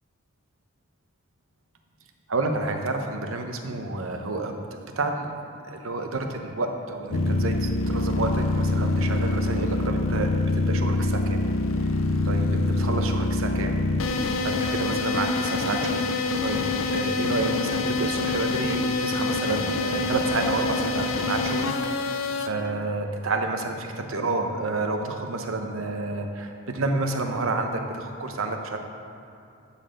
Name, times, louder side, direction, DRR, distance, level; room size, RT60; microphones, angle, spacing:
voice 1, 2.3-5.3 5.7-11.4 12.2-13.8 14.4-16.0 16.4-16.7 16.9-21.7 22.0-22.2 22.4-28.8, right 2 dB, 70° right, 4 dB, 0.8 m, -29 dB
sound 1, 7.1-22.5, left 2 dB, 65° left, 0.6 m, -25 dB
11.5 x 4.2 x 6.5 m, 2.6 s
head